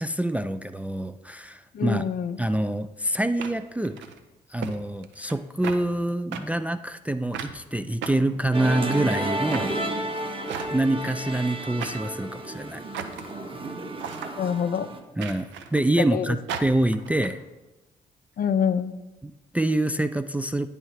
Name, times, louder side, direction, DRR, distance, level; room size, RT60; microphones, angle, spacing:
voice 1, 0.0-2.0 2.4-4.0 4.5-9.8 10.7-12.8 15.2-17.4 19.2-20.7, right 1 dB, 5° right, 10 dB, 0.4 m, -26 dB
voice 2, 1.7-2.4 14.4-14.9 16.0-16.2 18.4-18.9, left 7 dB, 45° left, 12 dB, 0.5 m, -25 dB
sound 1, 2.6-2.7 3.4-4.2 4.6-4.8 5.0-5.4 5.6-5.8 6.3-6.4 7.3-7.6 8.0-8.9 9.5-9.7 10.5-11.0 11.8-12.2 12.9-13.3 14.0-14.3 15.2-15.9 16.5-17.3, right 7 dB, 65° right, 0.6 m, -36 dB
Musical instrument, 8.5-15.0, right 1 dB, 25° right, 1.0 m, -32 dB
9.6 x 3.4 x 4.6 m, 1.1 s
hypercardioid pair, 40°, 20 cm